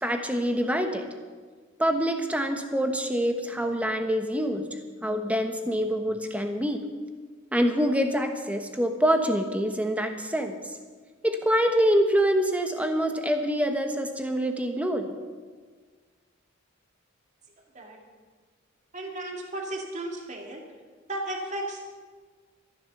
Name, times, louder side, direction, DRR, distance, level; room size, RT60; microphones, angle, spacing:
voice 1, 0.0-1.1 1.8-4.7 5.0-6.8 7.5-10.6 11.2-15.2, equal, 5° right, 5 dB, 1.2 m, -25 dB
voice 2, 18.9-20.6 21.1-21.8, right 1 dB, 35° right, 1 dB, 2.3 m, -34 dB
14.0 x 11.0 x 6.9 m, 1.5 s
head